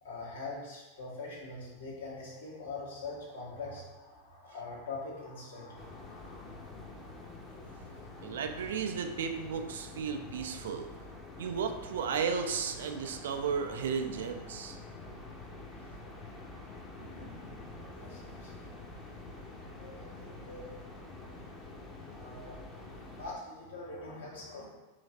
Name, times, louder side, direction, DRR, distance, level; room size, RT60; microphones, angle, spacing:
voice 1, 0.0-6.6 7.7-7.8 17.0-19.0 19.3-20.7 22.1-22.6 23.2-24.7, left 3 dB, 65° left, -5 dB, 1.3 m, -44 dB
sound 1, 5.7-23.3, left 2 dB, 15° left, 0.7 m, -47 dB
voice 2, 8.2-10.9 11.4-14.8, right 6 dB, 60° right, 6 dB, 0.3 m, -34 dB
3.2 x 3.1 x 4.0 m, 1.2 s
figure-of-eight pair, 90°, 0 cm